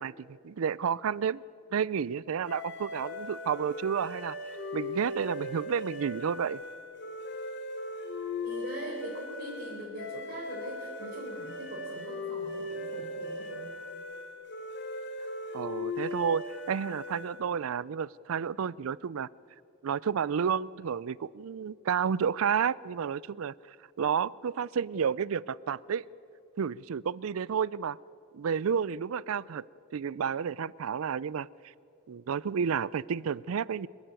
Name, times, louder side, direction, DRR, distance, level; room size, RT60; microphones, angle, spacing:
voice 1, 0.0-1.4 1.7-4.4 4.7-6.6 15.5-19.3 19.8-23.5 24.0-26.1 26.6-28.0 28.3-29.6 29.9-31.5 32.1-33.9, right 7 dB, 70° right, 23 dB, 0.4 m, -31 dB
sound 1, 2.5-17.5, left 2 dB, 55° left, 2.4 m, -39 dB
voice 2, 8.4-13.7, right 1 dB, 55° right, -5 dB, 4.3 m, -42 dB
26.5 x 11.5 x 9.0 m, 2.7 s
head